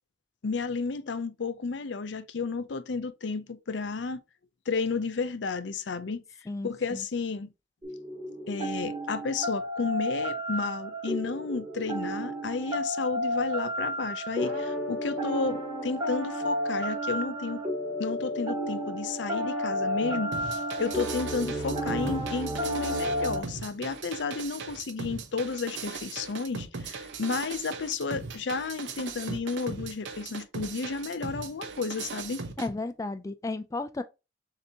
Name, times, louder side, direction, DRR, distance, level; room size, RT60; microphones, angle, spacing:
voice 1, 0.4-4.2 4.7-6.2 6.6-7.5 8.5-17.6 18.0-32.4, left 4 dB, 75° left, 0.5 m, -32 dB
voice 2, 6.5-7.0 32.6-34.0, left 2 dB, 20° left, 0.3 m, -33 dB
sound 1, 7.8-23.4, equal, 25° right, 1.5 m, -32 dB
sound 2, 20.3-32.7, right 4 dB, 80° right, 0.8 m, -39 dB
6.7 x 2.8 x 2.8 m
head